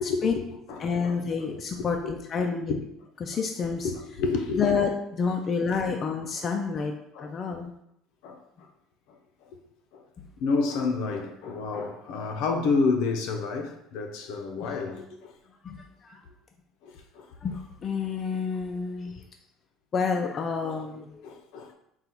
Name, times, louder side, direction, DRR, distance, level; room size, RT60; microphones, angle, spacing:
voice 1, 0.0-1.2 2.0-2.1 2.4-2.5 3.8-4.7 7.1-7.6 8.2-8.4 9.4-9.5 9.9-10.0 10.4-15.3 16.8-17.3 19.0-19.2 20.7-20.8 21.2-21.7, left 4 dB, 70° left, 0.6 m, -30 dB
voice 2, 0.8-2.8 3.2-3.9 4.6-6.9 7.2-7.7 10.2-10.3 15.6-16.2 17.4-19.2 19.9-21.3, left 5 dB, 30° left, 0.3 m, -29 dB
3.9 x 2.4 x 4.3 m
cardioid pair, 160°, 0 cm